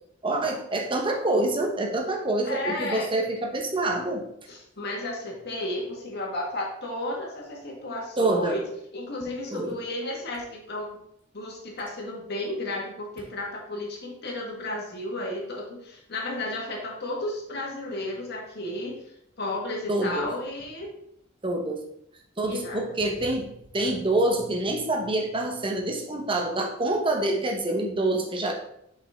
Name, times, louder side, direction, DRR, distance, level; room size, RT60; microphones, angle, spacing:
voice 1, 0.2-4.3 8.2-8.6 9.5-9.8 19.9-20.3 21.4-21.8 22.4-28.5, right 2 dB, 25° right, 2 dB, 1.0 m, -26 dB
voice 2, 2.4-3.1 4.5-8.6 8.9-11.0 11.3-19.0 19.4-20.9 22.5-22.8, left 1 dB, 55° left, -1 dB, 1.7 m, -33 dB
6.9 x 5.3 x 3.6 m, 0.75 s
head